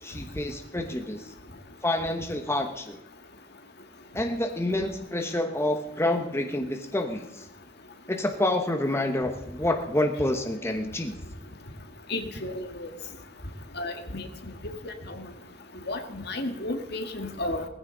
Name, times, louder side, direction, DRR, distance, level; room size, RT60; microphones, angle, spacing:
voice 1, 0.0-1.3 1.8-3.0 4.1-7.5 8.1-11.1, left 1 dB, 15° left, 4 dB, 1.0 m, -28 dB
voice 2, 12.1-12.9 13.8-14.2 14.9-15.2 15.9-17.7, left 2 dB, 60° left, 6 dB, 1.8 m, -33 dB
18.0 x 15.5 x 3.9 m, 0.89 s
head